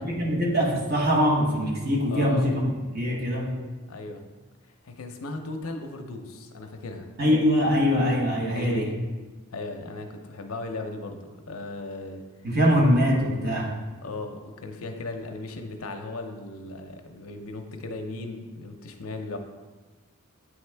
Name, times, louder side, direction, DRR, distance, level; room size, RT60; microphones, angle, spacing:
voice 1, 0.0-2.6 2.9-3.6 7.2-8.9 12.4-13.8, equal, 45° right, -3 dB, 1.2 m, -23 dB
voice 2, 2.1-2.5 3.9-4.2 4.8-7.1 8.5-8.9 9.5-12.2 14.0-19.4, left 2 dB, 70° left, 4 dB, 0.6 m, -36 dB
9.1 x 3.6 x 3.3 m, 1.3 s
head